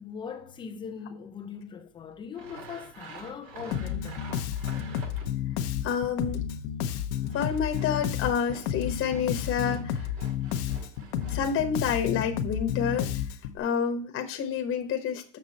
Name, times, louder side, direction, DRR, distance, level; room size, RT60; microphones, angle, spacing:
voice 1, 0.0-4.3, left 7 dB, 10° left, 0.3 m, -40 dB
Sawing, 2.3-5.6 7.0-11.6, right 5 dB, 60° right, 1.9 m, -47 dB
Bass guitar, 3.7-13.6, left 9 dB, 90° left, 1.0 m, -31 dB
voice 2, 5.8-6.5 7.3-10.0 11.3-13.1 13.5-15.4, left 7 dB, 30° left, 1.1 m, -28 dB
6.8 x 6.6 x 4.1 m
supercardioid pair, 150°, 45 cm